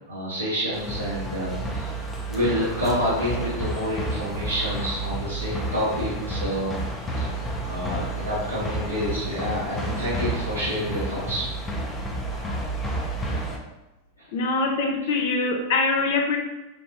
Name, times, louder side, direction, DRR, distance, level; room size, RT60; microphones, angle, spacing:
voice 1, 0.1-1.9 2.3-6.8 7.2-7.3 7.6-11.6 13.3-13.4 14.2-14.3, equal, 85° left, -11 dB, 1.4 m, -28 dB
sound 1, 0.7-13.6, right 1 dB, 15° left, 0.8 m, -30 dB
voice 2, 14.3-16.4, left 3 dB, 55° left, 2 dB, 0.8 m, -23 dB
5.3 x 3.4 x 2.9 m, 1.0 s
figure-of-eight pair, 90°, 0 cm